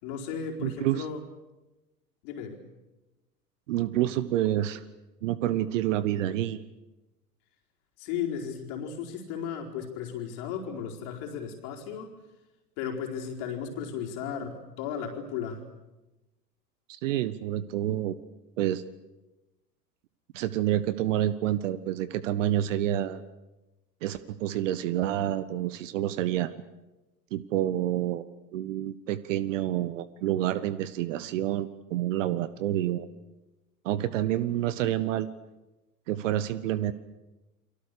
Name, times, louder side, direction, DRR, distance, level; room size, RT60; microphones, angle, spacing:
voice 1, 0.0-1.2 2.2-2.6 8.0-12.1 12.8-15.6, left 7 dB, 45° left, 1 dB, 4.5 m, -35 dB
voice 2, 0.6-1.0 3.7-4.8 5.2-6.6 16.9-18.2 18.6-18.8 20.3-23.2 24.0-26.5 27.3-28.2 28.5-33.1 33.8-35.3 36.1-36.9, right 13 dB, 50° right, 15 dB, 1.3 m, -28 dB
29.5 x 24.0 x 6.8 m, 1.0 s
figure-of-eight pair, 90°, 47 cm